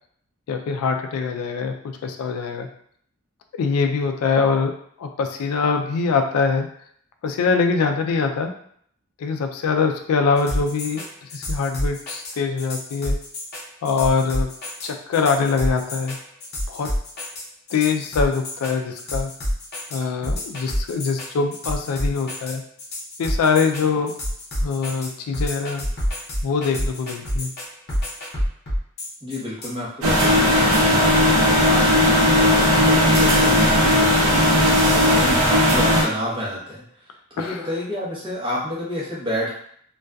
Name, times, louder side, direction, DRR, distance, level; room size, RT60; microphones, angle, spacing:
voice 1, 0.5-2.7 3.6-6.7 7.2-8.5 9.2-13.2 13.8-14.5 14.8-16.2 16.7-16.9 17.7-19.3 19.9-22.6 23.2-24.2 24.6-25.9 26.4-27.5 37.4-37.6, left 5 dB, 80° left, 4 dB, 0.3 m, -23 dB
sound 1, 10.4-29.7, equal, 45° left, 0.7 m, -28 dB
voice 2, 29.2-34.3 34.7-36.8 37.4-39.5, left 1 dB, 20° right, -7 dB, 0.7 m, -30 dB
sound 2, 30.0-36.0, left 1 dB, 75° right, 0.6 m, -16 dB
2.5 x 2.3 x 2.2 m, 0.64 s
head